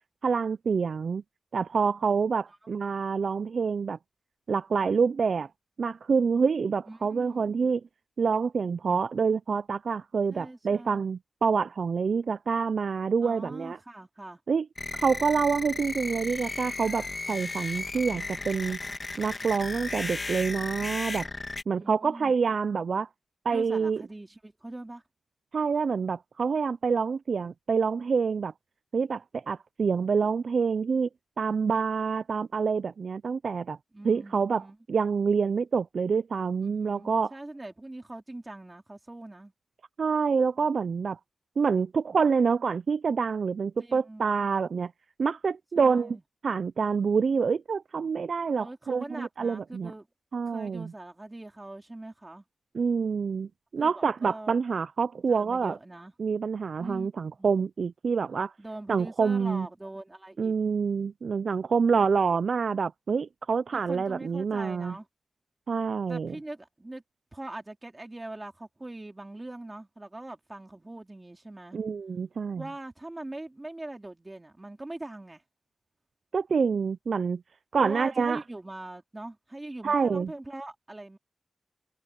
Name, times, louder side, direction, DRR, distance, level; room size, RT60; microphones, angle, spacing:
voice 1, 0.2-1.2 1.5-4.0 4.5-5.5 5.8-7.8 8.2-13.8 14.5-14.7 14.9-18.8 19.2-21.3 21.7-23.1 23.5-24.0 25.5-28.5 28.9-31.1 31.4-33.8 34.0-37.3 40.0-41.2 41.6-44.9 45.2-46.2 46.4-49.9 50.3-50.9 52.7-55.8 56.2-58.5 58.9-59.7 60.4-65.0 65.7-66.4 71.7-72.6 76.3-77.4 77.7-78.4 79.8-80.3, right 5 dB, 70° right, 0.3 m, -27 dB
voice 2, 6.9-7.6 10.3-11.1 13.2-14.4 21.7-22.3 23.5-25.0 33.9-34.8 36.6-39.5 43.8-44.2 45.8-46.2 48.6-50.1 50.5-52.4 53.8-54.5 55.3-56.1 56.8-57.1 57.4-57.5 58.6-60.5 63.7-65.1 66.1-67.0 67.3-71.8 72.6-75.4 77.8-81.2, right 2 dB, 20° right, 3.5 m, -42 dB
sound 1, 14.8-21.6, left 3 dB, 35° left, 2.1 m, -35 dB
wide cardioid pair, 120°, 0 cm